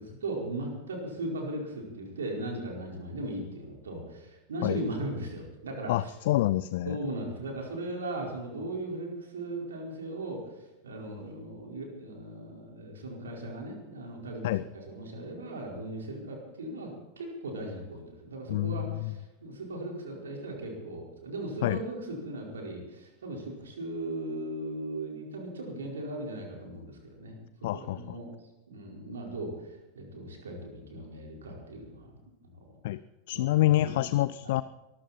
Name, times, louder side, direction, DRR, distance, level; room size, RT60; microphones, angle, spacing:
voice 1, 0.2-6.1 6.9-10.4 10.8-28.3 28.7-29.7 29.9-32.2 32.5-32.7 33.3-33.9 34.4-34.5, right 1 dB, 65° right, 0 dB, 4.7 m, -38 dB
voice 2, 5.9-7.0 14.4-14.6 18.5-19.1 21.6-21.8 27.6-28.2 32.8-33.0 33.3-34.6, left 15 dB, 55° left, 17 dB, 0.4 m, -27 dB
23.0 x 14.0 x 4.4 m, 1.0 s
figure-of-eight pair, 90°, 0 cm